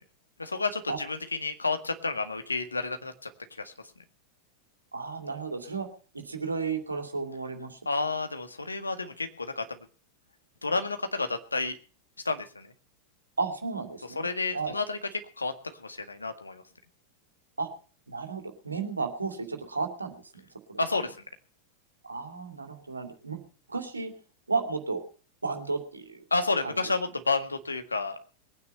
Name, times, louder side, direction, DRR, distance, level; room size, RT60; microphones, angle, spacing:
voice 1, 0.4-3.3 3.6-3.7 7.9-9.6 10.6-11.8 12.3-12.7 14.2-15.0 15.4-15.5 15.8-16.6 20.8-21.2 26.3-28.2, left 3 dB, 80° left, 8 dB, 1.8 m, -30 dB
voice 2, 4.9-5.9 6.1-7.8 13.4-14.3 14.5-14.7 17.6-17.7 18.1-20.8 22.0-23.4 23.7-24.1 24.5-25.0 25.4-26.2 26.6-26.8, right 4 dB, 80° right, 6 dB, 2.6 m, -33 dB
21.0 x 9.6 x 5.6 m, 0.40 s
figure-of-eight pair, 90°, 0 cm